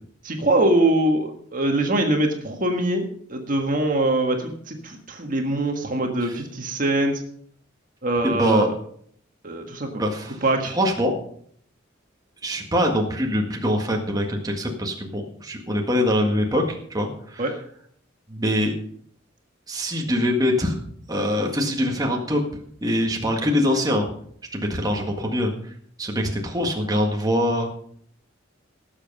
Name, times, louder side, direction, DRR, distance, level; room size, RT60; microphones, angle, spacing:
voice 1, 0.2-3.0 3.3-7.2 8.0-8.7 9.4-10.0 10.4-10.8 17.4-17.5, right 1 dB, 45° right, 3 dB, 1.6 m, -23 dB
voice 2, 8.2-8.7 9.9-10.4 10.7-11.2 12.4-17.4 18.3-18.7 19.7-20.8 21.1-22.4 22.8-24.1 24.5-25.5 26.0-27.7, equal, 20° right, 1 dB, 1.7 m, -23 dB
18.0 x 7.3 x 5.4 m, 0.63 s
head